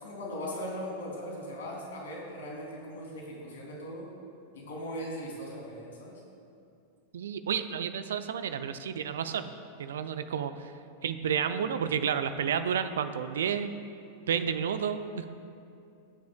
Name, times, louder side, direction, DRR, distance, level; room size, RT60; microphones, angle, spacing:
voice 1, 0.0-4.1 4.5-6.2, equal, 60° left, -2 dB, 2.8 m, -39 dB
voice 2, 7.1-9.5 9.8-10.7 11.0-13.7 14.3-15.3, right 7 dB, 60° right, 10 dB, 0.5 m, -31 dB
23.5 x 9.4 x 2.2 m, 2.5 s
figure-of-eight pair, 90°, 0 cm